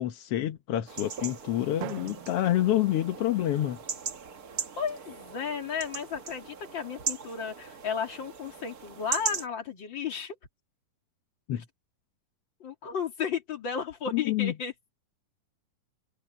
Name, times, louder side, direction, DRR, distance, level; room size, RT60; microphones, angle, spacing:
voice 1, 0.0-3.8 11.5-11.6 14.1-14.5, left 13 dB, 70° left, 1.4 m, -28 dB
sound 1, 0.9-9.5, right 6 dB, 65° right, 0.9 m, -38 dB
Drum, 1.8-3.8, right 16 dB, 85° right, 2.4 m, -43 dB
voice 2, 4.8-10.3 11.6-11.7 12.6-14.9, left 7 dB, 35° left, 2.8 m, -34 dB
omnidirectional pair, 4.0 m